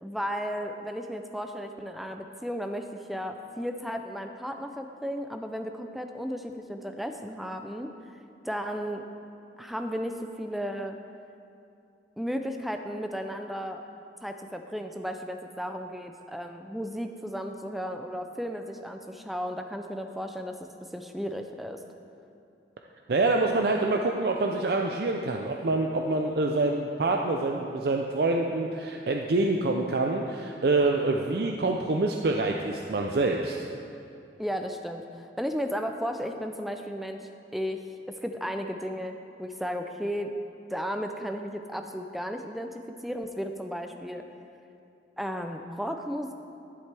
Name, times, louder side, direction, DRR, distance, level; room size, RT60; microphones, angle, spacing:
voice 1, 0.0-7.9 8.4-9.0 9.6-11.0 12.2-13.8 14.2-21.8 34.4-37.8 38.1-40.3 40.7-44.2 45.2-46.3, equal, ahead, 5 dB, 0.4 m, -34 dB
voice 2, 23.1-33.6, right 2 dB, 60° right, 2 dB, 0.5 m, -26 dB
11.0 x 10.5 x 3.4 m, 2.6 s
head